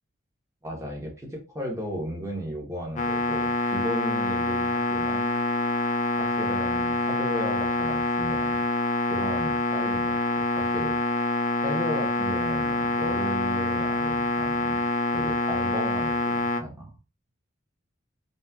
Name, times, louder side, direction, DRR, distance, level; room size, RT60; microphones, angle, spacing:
voice 1, 0.6-5.4 6.2-8.7 9.1-10.2 10.6-11.0 11.6-17.0, equal, 15° right, 0 dB, 0.9 m, -35 dB
sound 1, 3.0-16.6, left 2 dB, 35° left, 0.3 m, -26 dB
4.1 x 2.2 x 2.3 m, 0.32 s
head